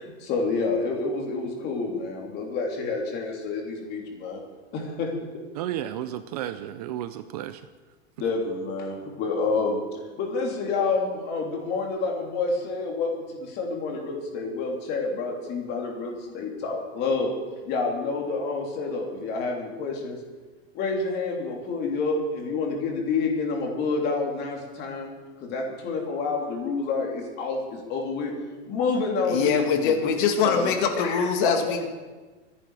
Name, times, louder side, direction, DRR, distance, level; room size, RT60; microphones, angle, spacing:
voice 1, 0.0-4.4 4.7-5.1 8.2-9.8 10.2-17.3 17.6-20.2 20.7-25.1 25.4-28.3 28.7-30.0 30.4-31.5, left 4 dB, 30° left, 1 dB, 3.0 m, -28 dB
voice 2, 5.5-7.6, right 12 dB, 35° right, 11 dB, 0.5 m, -32 dB
voice 3, 29.3-31.9, left 6 dB, 45° left, 5 dB, 2.0 m, -23 dB
24.0 x 10.5 x 4.8 m, 1.3 s
supercardioid pair, 170°, 34 cm